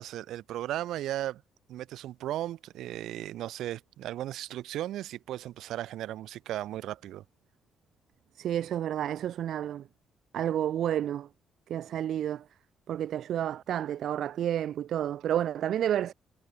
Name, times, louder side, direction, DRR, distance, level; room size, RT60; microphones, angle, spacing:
voice 1, 0.0-1.4 1.7-7.2, right 13 dB, 75° right, 1.8 m, -36 dB
voice 2, 8.4-9.8 10.3-11.3 11.7-12.4 12.9-16.1, right 10 dB, 55° right, 0.5 m, -30 dB
cardioid pair, 170°, 0 cm